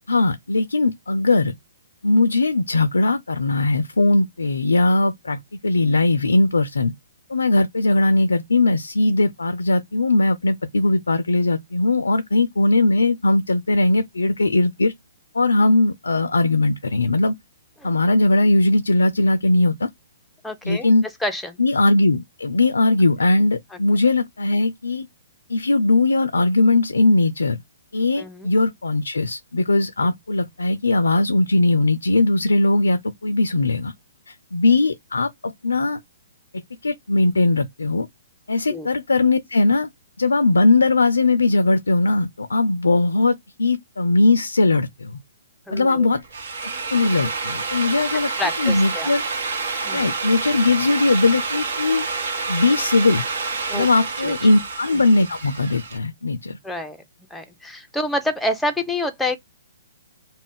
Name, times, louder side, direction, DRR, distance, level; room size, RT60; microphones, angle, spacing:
voice 1, 0.1-1.5 2.0-6.9 7.3-14.9 15.3-17.3 17.8-19.9 20.6-21.0 21.6-25.1 25.5-27.6 27.9-33.9 34.3-36.0 36.5-38.1 38.5-39.9 40.2-45.2 45.7-46.2 46.6-48.3 48.6-49.2 49.9-52.1 52.5-53.3 53.7-56.6, left 2 dB, 90° left, 0.4 m, -19 dB
voice 2, 20.4-20.9 21.2-21.6 28.2-28.5 30.0-30.1 38.7-38.9 45.7-46.1 48.4-49.1 49.8-50.1 53.7-53.9 54.2-54.3 56.6-57.0 57.3-59.4, left 1 dB, 5° left, 0.5 m, -27 dB
Drill, 46.1-56.0, right 4 dB, 60° right, 1.0 m, -28 dB
2.4 x 2.1 x 3.5 m
hypercardioid pair, 135°, 0 cm